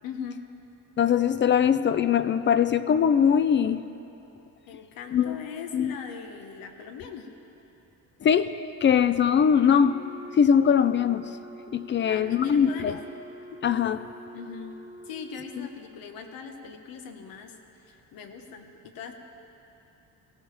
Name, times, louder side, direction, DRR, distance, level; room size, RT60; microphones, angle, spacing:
voice 1, 0.0-0.4 4.7-7.3 12.0-13.0 14.3-14.8 15.0-19.1, left 6 dB, 90° left, 5 dB, 1.2 m, -40 dB
voice 2, 1.0-3.9 5.1-5.4 5.7-5.9 8.2-8.5 8.8-10.0 10.4-11.2 11.7-13.0 13.6-14.1 15.6-15.7, left 8 dB, 35° left, 13 dB, 0.4 m, -21 dB
Wind instrument woodwind instrument, 9.6-15.7, equal, 10° right, 0.7 m, -46 dB
18.5 x 16.0 x 3.3 m, 2.9 s
cardioid pair, 135°, 34 cm